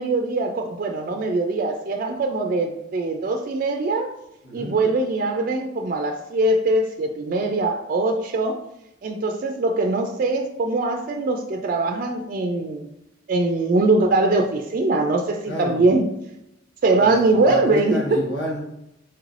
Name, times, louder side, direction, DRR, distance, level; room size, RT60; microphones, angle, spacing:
voice 1, 0.0-4.1 4.5-8.6 9.0-12.9 13.3-16.1 16.8-18.2, right 2 dB, 45° right, 4 dB, 0.3 m, -22 dB
voice 2, 4.4-4.8 15.5-15.8 16.9-18.6, equal, 65° left, -2 dB, 1.1 m, -30 dB
4.4 x 3.1 x 2.5 m, 0.85 s
head